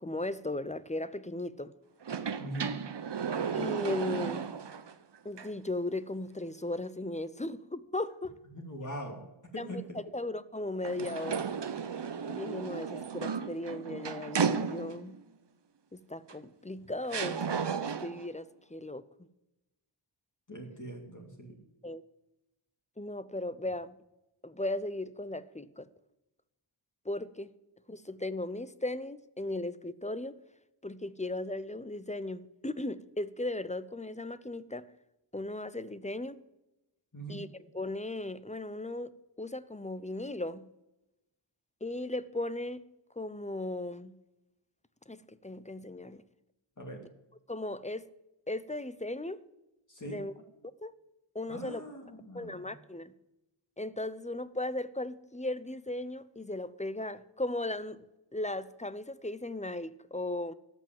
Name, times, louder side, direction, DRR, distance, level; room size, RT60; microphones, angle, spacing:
voice 1, 0.0-1.7 3.5-4.5 5.2-8.3 9.6-9.8 10.1-11.4 12.3-15.2 15.9-17.4 18.0-19.1 21.8-22.0 23.0-24.0 24.4-25.9 27.0-27.5 27.9-30.4 30.8-34.8 35.3-36.4 37.3-37.5 37.7-39.1 39.4-40.7 41.8-42.8 43.2-44.1 45.1-46.2 47.5-48.1 48.5-49.4 50.0-50.3 50.8-50.9 51.3-51.8 52.3-53.1 53.8-58.0 58.3-60.5, left 2 dB, 15° left, 15 dB, 0.7 m, -36 dB
sound 1, 2.0-4.9 5.4-5.5 10.8-15.2 16.3-16.4 17.1-18.3, right 6 dB, 55° right, 0.9 m, -34 dB
voice 2, 2.4-2.7 8.5-9.2 9.5-9.8 20.5-21.5 37.1-37.4 46.8-47.0 49.9-50.2 51.5-52.7, right 1 dB, 35° left, 1 dB, 2.7 m, -41 dB
13.5 x 6.0 x 9.2 m, 0.94 s
wide cardioid pair, 45°, 49 cm